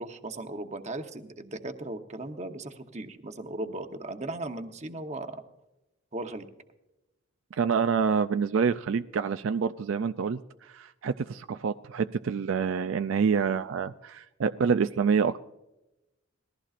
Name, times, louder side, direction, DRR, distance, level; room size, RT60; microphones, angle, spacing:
voice 1, 0.0-5.4 6.1-6.5, right 2 dB, 35° right, 6 dB, 1.0 m, -37 dB
voice 2, 7.6-15.4, right 6 dB, 70° right, 9 dB, 0.4 m, -27 dB
20.0 x 14.5 x 2.5 m, 0.95 s
head